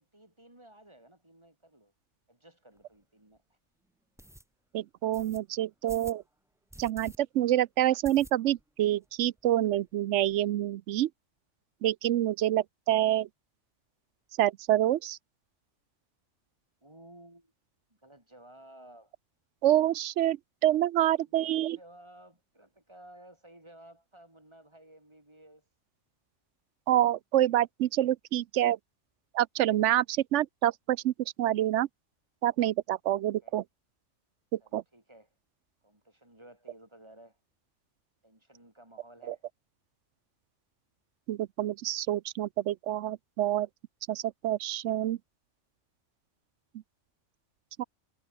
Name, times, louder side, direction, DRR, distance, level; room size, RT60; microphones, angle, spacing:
voice 1, 0.0-1.9 2.3-3.6 16.8-17.5 17.9-19.1 21.3-25.6 33.2-33.5 34.6-35.3 35.8-37.4 38.2-39.5, right 1 dB, 20° right, 3.4 m, -55 dB
sound 1, 2.8-2.9 3.3-3.4 4.2-4.4 5.1-5.4 5.9-6.2 6.7-7.2 7.5-7.6 8.0-8.7 9.0-9.1 9.4-9.5 9.7-10.4, right 1 dB, 5° right, 0.3 m, -49 dB
voice 2, 4.7-6.2 6.8-11.1 11.8-13.3 14.4-15.2 19.6-21.8 26.9-28.8 29.3-31.9 32.4-33.6 34.7-34.8 39.3-39.4 41.3-43.7 44.1-45.2 47.8-47.9, right 13 dB, 75° right, 0.9 m, -27 dB
omnidirectional pair, 1.2 m